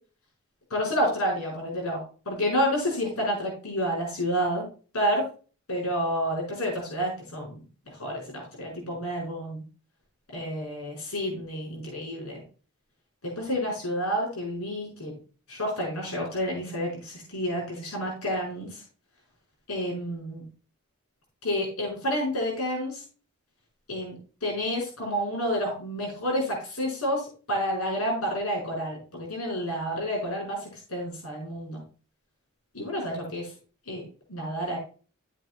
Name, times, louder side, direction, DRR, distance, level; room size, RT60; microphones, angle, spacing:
voice 1, 0.7-4.7 4.9-5.2 5.7-7.6 8.0-9.6 10.3-12.4 13.2-15.1 15.5-18.7 19.7-20.4 21.4-23.0 23.9-27.2 27.5-30.6 30.9-31.8 32.7-33.5 33.9-34.0 34.3-34.8, equal, 85° left, -1 dB, 5.0 m, -29 dB
14.0 x 8.0 x 2.3 m, 0.37 s
head